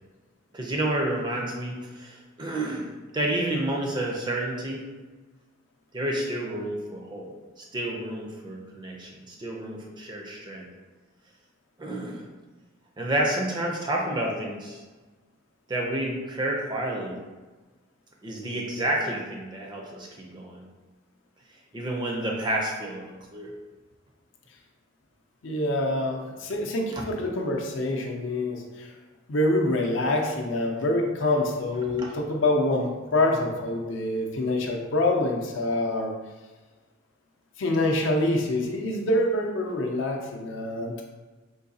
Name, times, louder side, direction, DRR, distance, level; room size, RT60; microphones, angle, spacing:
voice 1, 0.5-2.9 3.1-4.8 5.9-7.3 7.6-10.7 11.8-12.2 13.0-14.8 15.7-17.2 18.2-20.6 21.7-23.5 27.0-27.1 32.0-32.1, right 1 dB, 20° right, -1 dB, 0.4 m, -30 dB
voice 2, 25.4-28.9 29.3-36.1 37.6-40.9, left 1 dB, 70° left, 1 dB, 0.5 m, -26 dB
3.9 x 2.7 x 2.6 m, 1.3 s
head